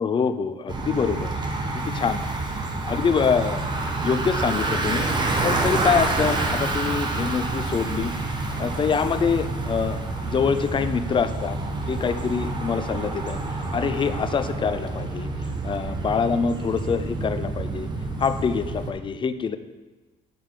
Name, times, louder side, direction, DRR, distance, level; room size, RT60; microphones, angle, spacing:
voice 1, 0.0-1.3 1.7-2.2 2.8-3.6 4.0-5.1 5.4-8.1 8.6-10.0 10.2-11.6 11.9-15.3 15.6-17.9 18.2-19.6, left 6 dB, 30° left, 11 dB, 0.5 m, -25 dB
Bicycle, 0.7-18.9, right 2 dB, 25° right, 1.1 m, -28 dB
8.7 x 6.8 x 3.8 m, 1.3 s
cardioid pair, 110°, 17 cm